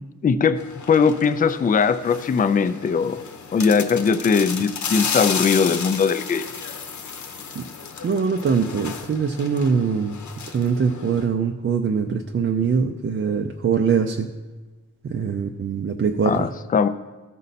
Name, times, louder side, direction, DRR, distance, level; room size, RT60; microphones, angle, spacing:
voice 1, 0.2-0.6 0.9-3.2 3.5-6.5 16.3-16.9, left 5 dB, 25° left, 11 dB, 0.4 m, -20 dB
sound 1, 0.6-11.3, left 6 dB, 60° left, 0.9 m, -33 dB
voice 2, 8.0-10.2 10.5-14.3 15.0-16.5, right 6 dB, 40° right, 3 dB, 0.5 m, -23 dB
14.0 x 5.4 x 4.1 m, 1.2 s
cardioid pair, 95°, 33 cm